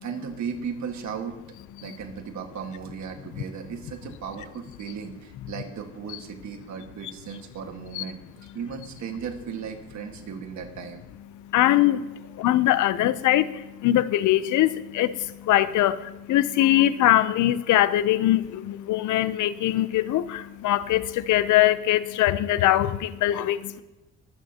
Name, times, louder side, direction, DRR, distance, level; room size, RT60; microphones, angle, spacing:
voice 1, 0.0-1.4 1.8-8.2 8.5-11.0, right 6 dB, 65° right, 4 dB, 1.8 m, -36 dB
voice 2, 11.3-23.8, left 13 dB, 80° left, 15 dB, 0.6 m, -22 dB
23.0 x 9.0 x 2.9 m, 1.1 s
cardioid pair, 90°, 30 cm